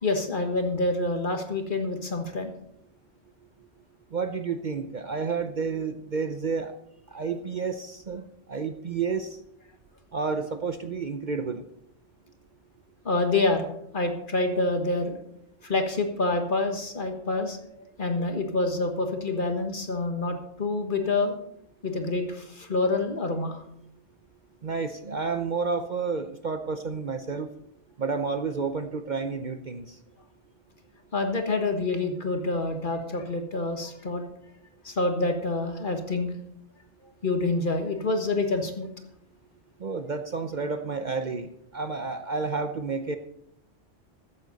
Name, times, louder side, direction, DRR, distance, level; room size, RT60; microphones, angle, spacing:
voice 1, 0.0-2.5 13.0-13.7 13.9-15.2 15.6-17.6 18.0-21.3 21.8-23.6 31.1-34.2 34.8-36.3 37.2-38.9, left 2 dB, 45° left, 5 dB, 1.6 m, -27 dB
voice 2, 4.1-6.7 7.1-8.2 8.5-9.3 10.1-11.6 24.6-27.5 28.0-29.9 39.8-43.2, right 4 dB, 45° right, 8 dB, 0.8 m, -30 dB
14.0 x 9.9 x 4.0 m, 0.73 s
omnidirectional pair, 1.2 m